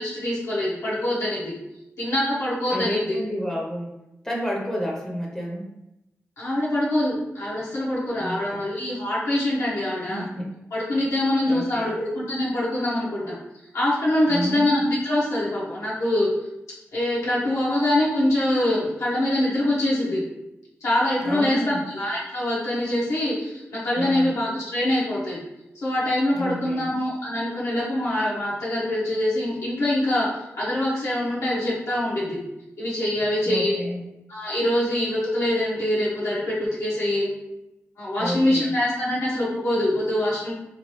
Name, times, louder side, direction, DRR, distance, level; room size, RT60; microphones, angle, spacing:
voice 1, 0.0-1.5 2.0-3.2 6.4-10.2 10.7-13.4 13.7-16.3 16.9-20.2 20.8-25.4 25.8-32.4 32.8-33.8 34.3-37.3 38.0-40.5, left 1 dB, 85° left, -7 dB, 0.8 m, -24 dB
voice 2, 2.7-3.9 4.2-5.7 8.2-8.6 10.1-10.5 11.5-11.9 14.3-14.7 21.2-21.9 23.9-24.3 26.3-26.9 33.5-34.0 38.2-38.7, equal, 10° left, -2 dB, 0.5 m, -30 dB
3.0 x 2.2 x 2.9 m, 0.90 s
wide cardioid pair, 95°, 5 cm